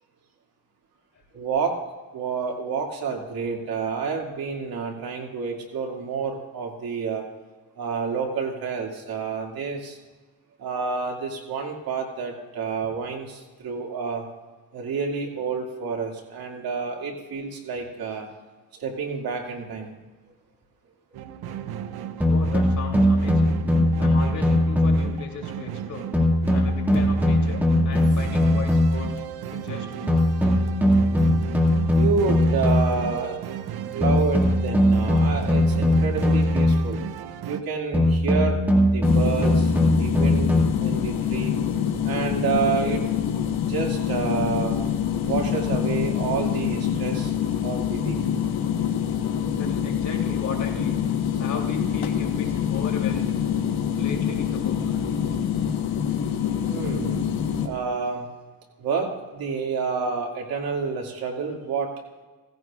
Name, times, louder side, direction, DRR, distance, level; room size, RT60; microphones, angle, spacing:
voice 1, 1.3-1.8 2.1-7.2 7.8-10.0 10.6-14.2 14.7-18.3 18.8-19.9 21.5-21.6 31.9-33.4 33.9-37.0 37.4-38.6 38.9-39.7 40.0-40.5 40.8-41.5 42.0-43.1 43.7-44.8 45.3-47.3 47.6-48.2 49.0-49.1 56.7-58.3 58.8-61.9, right 5 dB, 75° right, 0 dB, 2.4 m, -29 dB
voice 2, 16.9-17.6 22.3-23.6 24.0-26.1 26.5-29.2 29.5-30.2 40.9-41.5 47.7-47.8 49.1-51.0 51.4-53.3 53.9-55.0, left 5 dB, 55° left, 0 dB, 3.0 m, -37 dB
sound 1, 21.1-37.6, right 10 dB, 90° right, 0.7 m, -35 dB
sound 2, 22.2-25.2 26.1-29.1 30.1-33.1 34.0-37.0 37.9-40.6, left 1 dB, 5° right, 2.0 m, -20 dB
sound 3, 39.0-57.7, left 8 dB, 80° left, 1.3 m, -26 dB
17.0 x 16.0 x 2.4 m, 1.3 s
cardioid pair, 125°, 36 cm